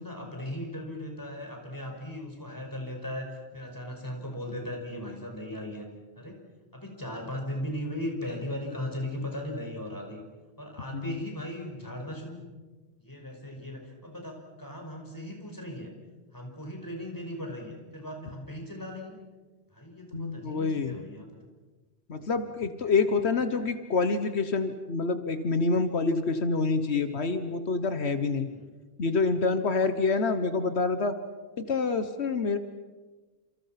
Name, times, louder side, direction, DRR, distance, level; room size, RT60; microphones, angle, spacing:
voice 1, 0.0-5.9 6.2-6.4 6.7-10.2 10.6-12.4 13.0-15.9 16.3-19.2 19.7-21.3 22.9-23.0 23.5-23.7 28.3-28.6, left 1 dB, 20° left, 1 dB, 5.5 m, -37 dB
voice 2, 20.1-21.0 22.1-28.5 29.0-31.1 31.6-32.6, left 4 dB, 85° left, 9 dB, 1.5 m, -27 dB
29.0 x 28.0 x 5.9 m, 1.3 s
omnidirectional pair, 1.1 m